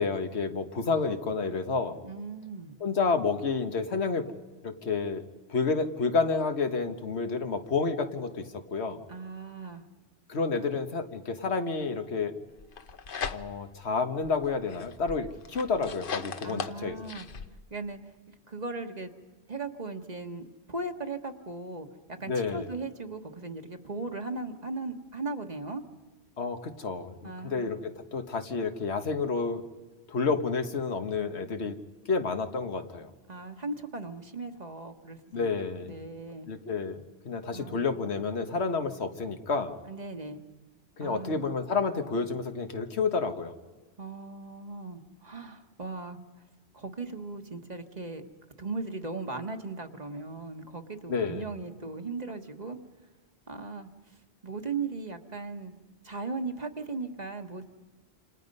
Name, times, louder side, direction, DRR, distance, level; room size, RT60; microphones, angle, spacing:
voice 1, 0.0-2.0 2.8-4.3 4.6-5.2 5.5-9.0 10.3-12.3 13.3-17.0 22.3-22.7 26.4-29.6 30.1-31.8 32.1-33.1 35.3-36.0 36.5-39.8 41.0-43.5 51.1-51.5, left 4 dB, 85° left, 7 dB, 1.6 m, -30 dB
voice 2, 2.0-2.7 9.1-9.8 16.4-17.3 17.7-18.0 18.5-19.1 19.5-25.8 27.2-27.9 33.3-35.5 35.9-36.5 37.5-37.9 39.9-40.4 41.0-41.6 44.0-46.2 46.7-48.2 48.6-52.8 53.5-53.9 54.4-55.7 56.0-57.6, right 3 dB, 40° right, 6 dB, 1.5 m, -38 dB
sound 1, 12.6-13.8 14.2-17.5, left 6 dB, 55° left, 1.1 m, -38 dB
28.0 x 27.0 x 5.4 m, 1.3 s
omnidirectional pair, 1.1 m